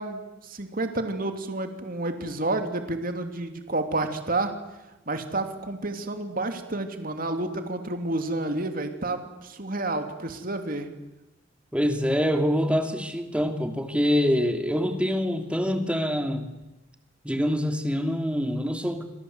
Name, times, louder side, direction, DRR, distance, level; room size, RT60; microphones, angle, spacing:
voice 1, 0.0-4.5 5.1-10.9, right 2 dB, 50° right, 6 dB, 2.9 m, -30 dB
voice 2, 11.7-16.5 17.2-19.0, equal, 5° right, 5 dB, 3.0 m, -25 dB
27.5 x 27.0 x 8.1 m, 1.0 s
head